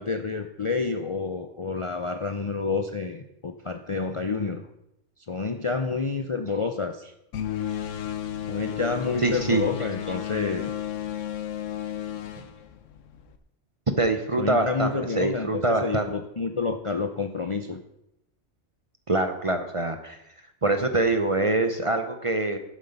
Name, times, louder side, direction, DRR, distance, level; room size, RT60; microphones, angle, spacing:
voice 1, 0.0-4.7 5.3-7.1 8.5-10.7 14.4-17.8, left 4 dB, 40° left, 6 dB, 0.5 m, -29 dB
sound 1, 7.3-13.4, left 10 dB, 85° left, 1.2 m, -33 dB
voice 2, 9.2-9.7 13.9-14.9 15.2-16.0 19.1-20.2 20.6-22.6, right 2 dB, 35° right, 7 dB, 0.7 m, -24 dB
11.0 x 7.4 x 5.3 m, 0.83 s
omnidirectional pair, 1.3 m